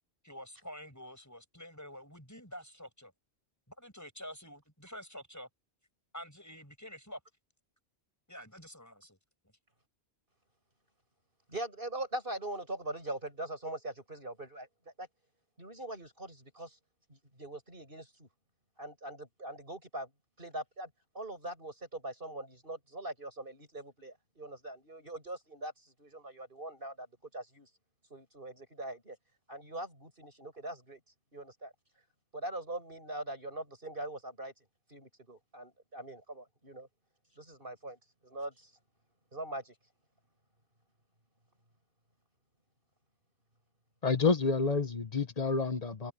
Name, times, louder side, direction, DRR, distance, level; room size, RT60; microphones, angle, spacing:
voice 1, 0.2-3.1 3.7-5.5 6.1-7.2 8.3-9.2, equal, 15° left, 6.8 m, -48 dB
voice 2, 11.5-14.7 15.0-15.1 15.6-16.8 17.1-18.3 18.8-20.1 20.4-20.9 21.1-25.7 26.0-27.1 27.3-27.7 28.1-29.2 29.5-31.0 31.3-31.7 32.3-34.5 34.9-36.9 37.4-38.0 38.2-38.7 39.3-39.7, right 1 dB, 55° right, 8.1 m, -42 dB
voice 3, 44.0-46.1, left 4 dB, 35° left, 1.4 m, -29 dB
omnidirectional pair, 1.1 m